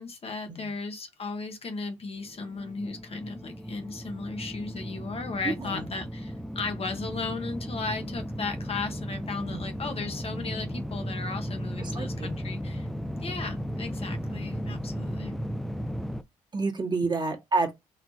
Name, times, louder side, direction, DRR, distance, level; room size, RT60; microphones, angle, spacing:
voice 1, 0.0-12.9 13.2-15.4, left 4 dB, 45° left, 1.2 m, -36 dB
sound 1, 2.2-16.2, equal, ahead, 0.4 m, -35 dB
voice 2, 5.4-5.9 9.5-9.7 11.8-12.3 16.5-17.7, right 3 dB, 30° right, 1.7 m, -29 dB
4.2 x 2.7 x 2.8 m
supercardioid pair, 55°, 14 cm